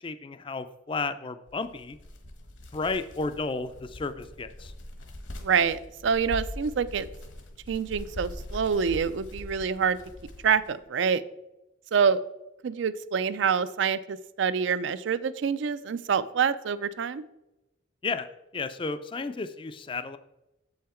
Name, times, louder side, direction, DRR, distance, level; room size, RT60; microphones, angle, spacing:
voice 1, 0.0-2.0 2.7-4.7 18.0-20.2, left 3 dB, 25° left, 12 dB, 0.3 m, -33 dB
sound 1, 1.5-10.7, left 1 dB, 70° left, 1.1 m, -42 dB
voice 2, 5.4-7.1 7.7-10.0 10.4-11.2 11.9-12.2 12.6-17.2, right 6 dB, 65° right, 16 dB, 0.4 m, -26 dB
7.5 x 5.7 x 4.3 m, 0.94 s
head